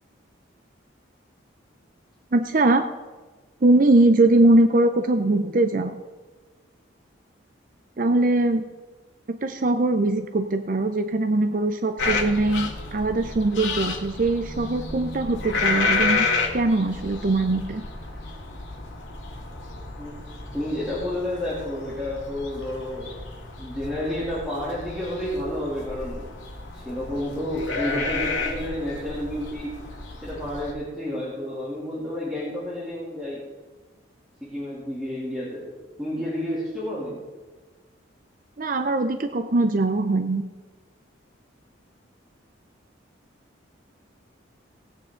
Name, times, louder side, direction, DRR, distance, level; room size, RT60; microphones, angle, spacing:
voice 1, 2.3-2.9 3.6-6.0 8.0-8.7 9.3-16.3 16.5-17.8 38.6-40.4, right 2 dB, 45° right, 8 dB, 0.5 m, -21 dB
sound 1, 12.0-30.7, left 3 dB, 90° left, 1.9 m, -31 dB
voice 2, 20.5-23.1 23.6-26.2 26.7-29.7 30.2-33.4 34.4-35.7 36.0-37.2, left 1 dB, 5° right, -10 dB, 2.7 m, -30 dB
18.5 x 8.6 x 3.8 m, 1.3 s
head